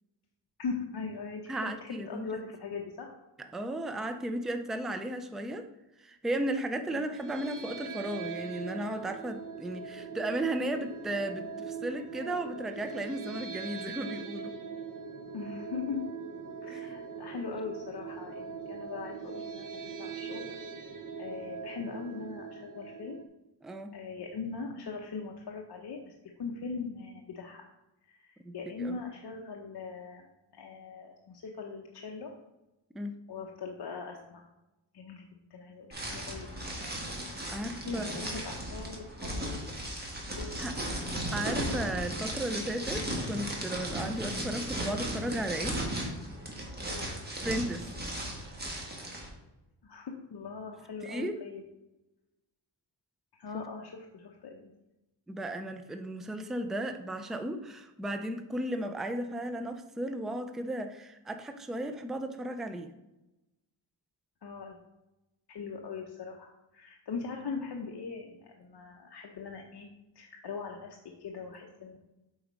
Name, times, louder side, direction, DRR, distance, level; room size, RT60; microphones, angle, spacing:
voice 1, 0.6-3.1 6.9-7.2 15.3-16.0 16.6-20.5 20.8-23.2 23.9-26.1 26.4-27.7 28.1-30.2 30.5-32.3 33.3-34.5 34.9-36.5 37.6-39.6 40.3-40.6 46.7-47.1 49.8-51.6 53.3-54.7 64.4-64.8 65.5-69.9 70.1-72.0, left 5 dB, 60° left, 0 dB, 0.8 m, -40 dB
voice 2, 1.5-2.4 3.5-5.7 6.0-14.6 16.7-16.9 23.6-23.9 28.4-29.0 32.9-33.1 37.5-38.1 40.6-40.8 41.3-45.8 47.4-47.9 51.0-51.4 55.3-62.9, right 1 dB, ahead, 8 dB, 0.3 m, -35 dB
sound 1, 7.1-23.3, right 6 dB, 45° right, 0.7 m, -41 dB
sound 2, 35.9-49.3, right 1 dB, 20° right, 1.4 m, -36 dB
7.9 x 4.0 x 5.1 m, 0.99 s
wide cardioid pair, 180°, 45 cm